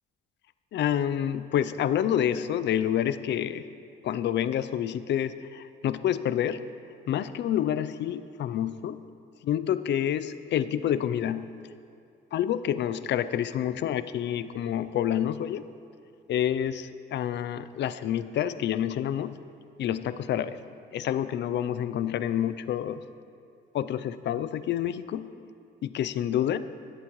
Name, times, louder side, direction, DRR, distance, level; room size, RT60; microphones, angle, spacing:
voice 1, 0.7-3.6 4.0-6.6 7.1-9.0 9.4-11.4 12.3-15.7 16.3-19.3 19.8-20.6 20.9-23.0 23.7-25.3 25.8-26.7, left 10 dB, 60° left, 14 dB, 0.5 m, -28 dB
19.0 x 8.2 x 3.1 m, 2.4 s
cardioid pair, 90°, 20 cm